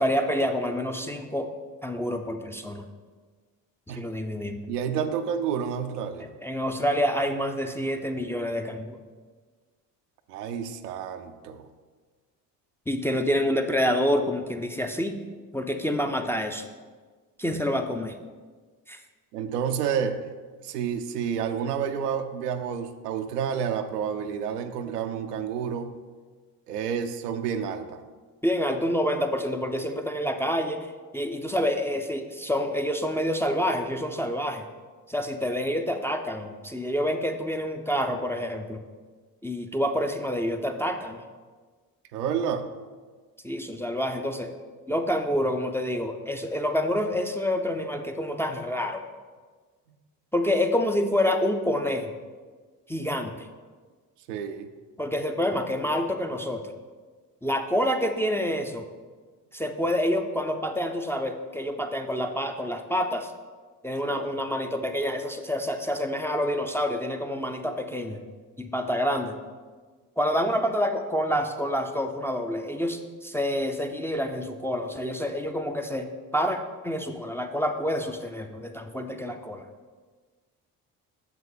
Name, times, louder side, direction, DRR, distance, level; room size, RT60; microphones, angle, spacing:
voice 1, 0.0-1.5 1.8-2.9 4.0-4.7 6.4-9.0 12.9-15.2 15.5-16.7 17.4-18.1 18.9-19.0 28.4-34.7 35.1-38.8 39.4-41.2 43.4-44.5 44.9-49.0 50.3-52.1 52.9-53.5 55.0-56.7 57.4-58.9 59.5-63.3 63.8-68.2 68.6-69.4 70.2-76.6 76.8-79.7, equal, 5° left, 4 dB, 0.4 m, -27 dB
voice 2, 4.7-6.3 10.3-11.7 17.5-17.6 19.3-20.2 20.6-26.0 26.7-28.0 42.1-42.7 54.3-54.7 64.1-64.3, right 7 dB, 85° right, 8 dB, 0.6 m, -30 dB
6.8 x 6.0 x 3.8 m, 1.4 s
hypercardioid pair, 50°, 47 cm